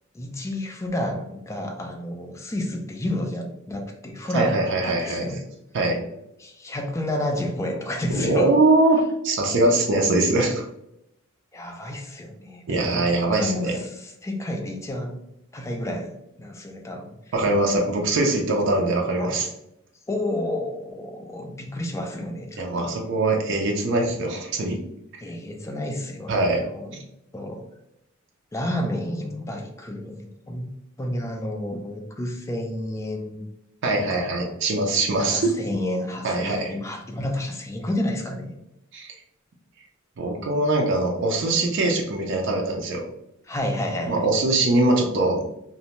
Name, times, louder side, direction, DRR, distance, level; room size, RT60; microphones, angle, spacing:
voice 1, 0.1-5.4 6.4-8.5 11.5-15.2 15.5-17.1 19.2-19.3 20.1-22.9 25.2-27.0 27.3-27.6 28.5-30.7 31.0-33.5 34.0-34.3 35.2-38.5 43.5-44.3, left 1 dB, 15° left, 3 dB, 0.3 m, -30 dB
voice 2, 4.3-5.3 5.7-6.0 8.1-10.6 12.7-13.8 17.3-19.5 22.6-24.8 26.3-26.6 33.8-35.5 36.2-36.7 38.9-39.1 40.2-43.0 44.1-45.4, right 2 dB, 60° right, 1 dB, 0.4 m, -22 dB
2.6 x 2.1 x 2.9 m, 0.82 s
head